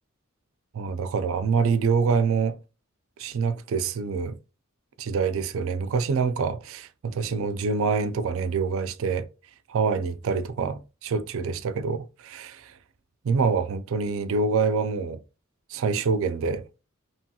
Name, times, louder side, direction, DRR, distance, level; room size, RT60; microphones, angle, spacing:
voice 1, 0.7-2.6 3.2-4.4 5.0-9.3 9.7-12.7 13.2-15.2 15.7-16.6, right 5 dB, 70° right, 0.4 m, -26 dB
3.0 x 2.2 x 2.7 m
head